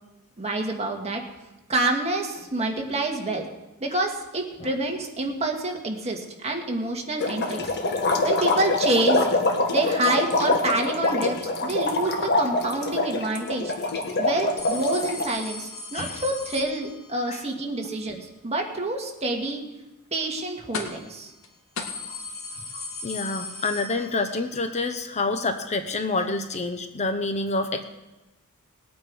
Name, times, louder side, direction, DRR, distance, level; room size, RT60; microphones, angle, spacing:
voice 1, 0.4-1.2 1.7-3.5 3.8-7.7 8.2-9.3 9.7-13.7 14.2-19.6 20.1-21.3, right 2 dB, 30° right, 2 dB, 1.8 m, -27 dB
sound 1, 7.2-15.3, left 2 dB, 50° left, 1.5 m, -25 dB
sound 2, 14.6-17.3 20.7-21.1 21.4-21.5 21.8-24.5 24.8-24.9 25.9-26.0, left 3 dB, 65° left, 2.0 m, -37 dB
voice 2, 22.7-27.8, left 3 dB, 30° left, 7 dB, 0.8 m, -28 dB
20.0 x 9.0 x 4.7 m, 1.0 s
head